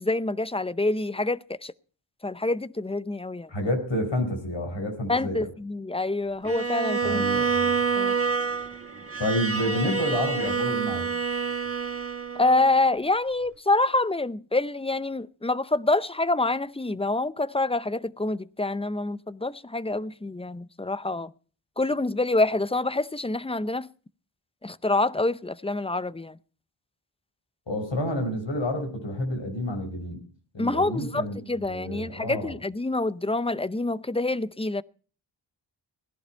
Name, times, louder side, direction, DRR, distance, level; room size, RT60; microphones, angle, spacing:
voice 1, 0.0-1.7 2.2-3.5 5.1-7.2 8.0-8.1 12.4-21.3 21.8-23.9 24.6-26.4 30.6-34.8, left 2 dB, 15° left, 0.5 m, -26 dB
voice 2, 3.5-5.5 7.0-7.8 9.2-11.1 27.7-30.2 30.5-31.4 31.7-32.5, left 1 dB, 70° left, 4.7 m, -29 dB
Bowed string instrument, 6.5-12.7, right 5 dB, 30° right, 1.5 m, -27 dB
17.5 x 11.5 x 4.5 m
cardioid pair, 45°, 46 cm